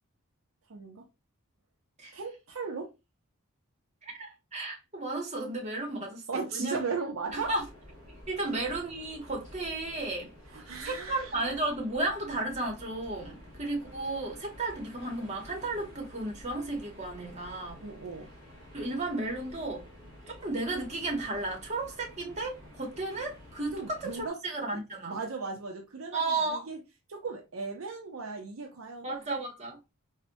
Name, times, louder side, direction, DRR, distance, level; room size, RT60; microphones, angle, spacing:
voice 1, 0.7-1.1 2.1-2.9 6.3-7.5 10.5-11.4 17.8-18.3 23.7-24.4 24.7-24.8 25.0-26.8 27.1-29.1, right 4 dB, 65° right, 0.5 m, -37 dB
voice 2, 4.0-6.8 7.3-7.6 8.3-10.3 10.8-17.8 18.7-19.9 20.3-25.2 26.1-26.6 29.0-29.8, right 2 dB, 30° right, 0.9 m, -34 dB
sound 1, 7.2-24.3, left 1 dB, 5° left, 2.0 m, -51 dB
4.1 x 2.1 x 2.5 m
head